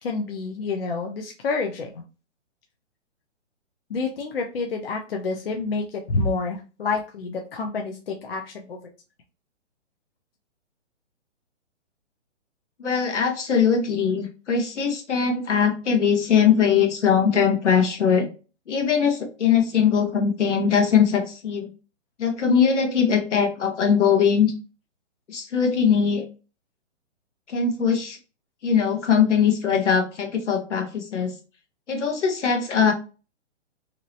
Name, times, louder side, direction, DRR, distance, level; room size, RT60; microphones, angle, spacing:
voice 1, 0.0-2.0 3.9-8.8, left 4 dB, 50° left, 2 dB, 0.5 m, -28 dB
voice 2, 12.8-18.3 18.7-21.7 22.2-24.5 25.3-26.2 27.5-28.2 28.6-31.3 31.9-32.9, left 7 dB, 70° left, 6 dB, 1.0 m, -21 dB
3.0 x 2.9 x 2.6 m, 0.34 s
hypercardioid pair, 170°, 37 cm